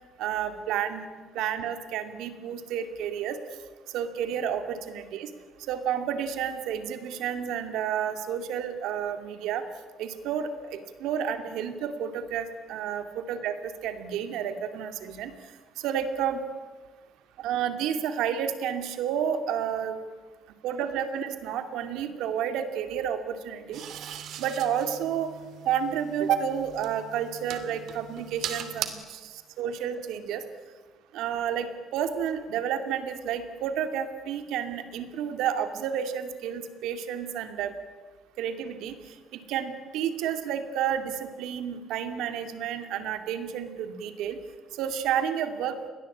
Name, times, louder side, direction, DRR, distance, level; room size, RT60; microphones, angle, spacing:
voice 1, 0.2-1.0 1.3-3.4 3.9-5.3 5.7-9.6 10.0-15.3 15.8-16.4 17.4-19.9 20.6-23.8 24.4-25.3 25.6-30.4 31.1-37.7 38.4-39.0 39.5-44.4 44.7-45.8, right 8 dB, 80° right, 8 dB, 2.6 m, -30 dB
sound 1, 23.7-28.9, right 10 dB, 60° right, 2.6 m, -39 dB
30.0 x 22.0 x 8.7 m, 1.4 s
cardioid pair, 165°, 0 cm